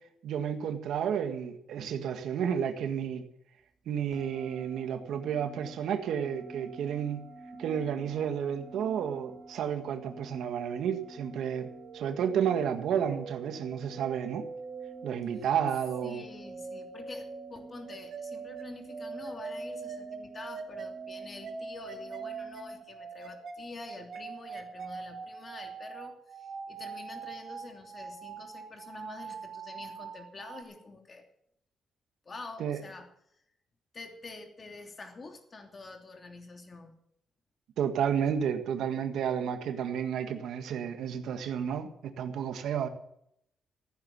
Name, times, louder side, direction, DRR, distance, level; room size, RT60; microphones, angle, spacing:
voice 1, 0.2-3.2 3.8-7.2 7.6-11.7 11.9-14.4 15.0-16.2 32.6-32.8 37.8-42.9, right 8 dB, 85° right, 7 dB, 1.7 m, -31 dB
sound 1, 4.1-22.8, right 2 dB, ahead, 4.0 m, -50 dB
sound 2, 11.5-30.6, right 5 dB, 60° right, 3.5 m, -43 dB
voice 2, 16.0-31.2 32.2-33.1 33.9-36.9, left 3 dB, 35° left, 4 dB, 3.0 m, -47 dB
15.0 x 9.6 x 7.3 m, 0.73 s
cardioid pair, 100°, 0 cm